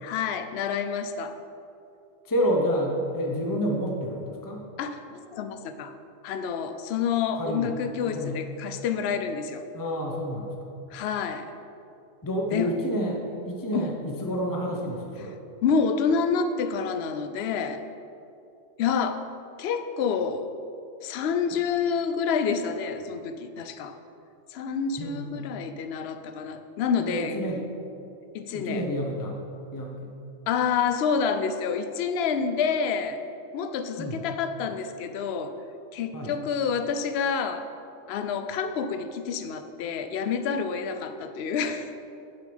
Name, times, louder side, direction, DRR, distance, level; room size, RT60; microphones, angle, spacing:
voice 1, 0.0-1.4 4.8-5.9 6.2-9.7 10.9-11.5 12.5-12.7 13.7-13.9 15.6-17.8 18.8-19.2 19.6-20.5 21.0-24.0 24.5-27.4 28.3-28.8 30.5-33.2 33.5-35.5 35.9-37.7 38.1-41.9, left 6 dB, 60° left, 9 dB, 0.8 m, -28 dB
voice 2, 2.2-4.6 7.3-7.8 8.1-8.4 9.7-10.5 12.2-15.4 25.0-25.4 27.0-27.6 28.5-29.4 29.7-30.1 34.0-34.2 36.1-36.4, equal, 20° left, 0 dB, 0.9 m, -29 dB
10.0 x 6.9 x 5.3 m, 2.7 s
omnidirectional pair, 1.3 m